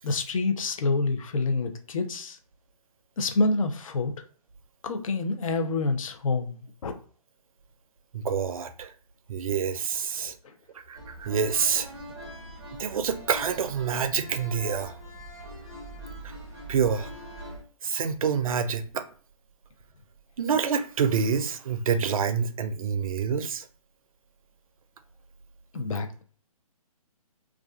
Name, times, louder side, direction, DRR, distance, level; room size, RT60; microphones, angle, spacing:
voice 1, 0.0-2.4 3.2-4.1 4.8-6.9 25.7-26.2, left 3 dB, 60° left, 0.5 m, -27 dB
voice 2, 8.1-8.9 9.3-10.3 10.9-11.9 12.8-14.9 16.7-17.1 17.8-19.1 20.4-23.6, right 6 dB, 65° right, 0.4 m, -27 dB
sound 1, 10.9-17.6, right 1 dB, 15° right, 0.6 m, -42 dB
2.3 x 2.3 x 2.3 m
figure-of-eight pair, 140°, 19 cm